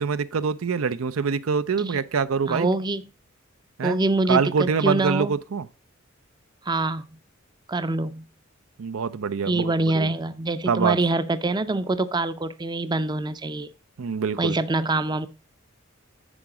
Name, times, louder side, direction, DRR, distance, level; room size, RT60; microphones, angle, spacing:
voice 1, 0.0-2.7 3.8-4.0 4.3-5.7 8.8-10.1 10.7-11.0 14.0-14.5, right 5 dB, 80° right, 0.5 m, -25 dB
voice 2, 2.5-3.0 3.8-5.3 6.7-7.1 7.7-8.2 9.5-13.7 14.4-15.3, right 2 dB, 20° right, 0.5 m, -25 dB
10.0 x 4.7 x 4.9 m
head